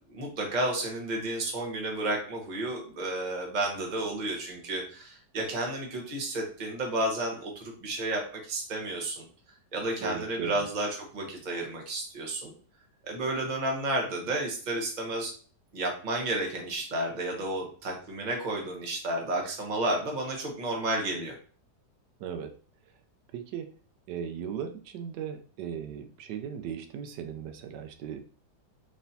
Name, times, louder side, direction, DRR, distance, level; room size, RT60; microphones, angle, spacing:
voice 1, 0.1-9.3 9.7-12.5 13.0-15.3 15.7-21.3, right 1 dB, 35° right, 0 dB, 0.9 m, -32 dB
voice 2, 10.0-10.7 22.2-22.5 23.3-23.7 24.1-28.2, right 8 dB, 80° right, 7 dB, 1.2 m, -37 dB
4.1 x 3.5 x 2.6 m, 0.42 s
omnidirectional pair, 1.8 m